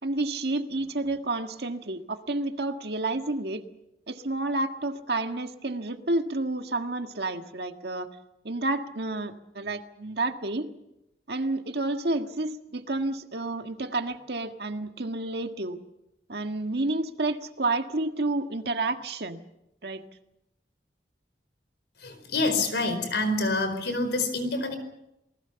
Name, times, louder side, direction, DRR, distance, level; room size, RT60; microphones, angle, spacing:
voice 1, 0.0-3.6 4.1-8.1 8.4-10.7 11.3-15.8 16.3-19.4 19.8-20.0, right 2 dB, 65° right, 6 dB, 1.7 m, -30 dB
voice 2, 22.0-24.8, left 2 dB, 75° left, 9 dB, 4.6 m, -27 dB
28.0 x 19.5 x 7.0 m, 0.89 s
head